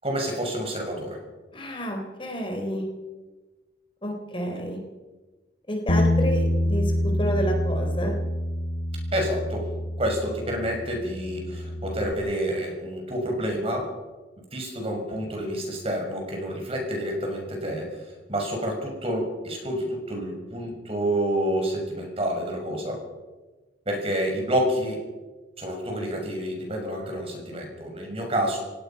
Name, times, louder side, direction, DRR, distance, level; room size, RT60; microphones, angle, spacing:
voice 1, 0.0-1.2 9.1-9.7 10.0-13.9 14.5-23.0 23.9-25.1 25.6-28.6, equal, 35° right, 1 dB, 6.2 m, -28 dB
voice 2, 1.5-2.8 4.0-4.8 5.7-8.2, equal, 30° left, 2 dB, 3.8 m, -30 dB
Bass guitar, 5.9-12.1, left 1 dB, 55° left, 1.3 m, -26 dB
30.0 x 17.0 x 5.8 m, 1.2 s
head